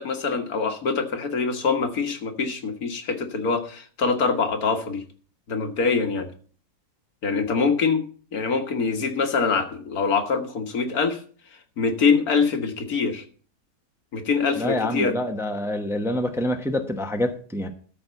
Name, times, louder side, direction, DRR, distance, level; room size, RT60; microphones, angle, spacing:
voice 1, 0.0-5.0 5.5-6.3 7.2-8.0 8.3-11.2 11.8-13.2 14.1-15.2, left 5 dB, 80° left, 5 dB, 1.9 m, -24 dB
voice 2, 14.6-17.7, left 1 dB, ahead, 5 dB, 0.9 m, -26 dB
13.0 x 4.4 x 8.0 m, 0.43 s
omnidirectional pair, 1.5 m